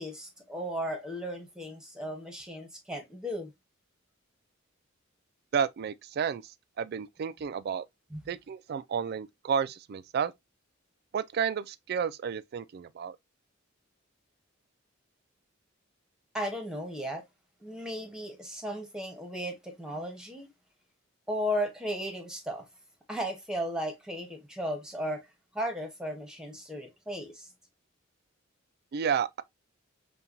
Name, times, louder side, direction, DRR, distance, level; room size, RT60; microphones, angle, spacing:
voice 1, 0.0-3.5 8.1-8.2 16.3-17.2 17.6-20.5 21.3-22.6 23.1-25.3 25.5-27.5, equal, 5° right, 1.0 m, -35 dB
voice 2, 5.5-6.5 6.8-7.8 8.3-10.3 11.1-13.2 28.9-29.4, right 7 dB, 50° right, 0.3 m, -31 dB
5.5 x 2.2 x 2.6 m
head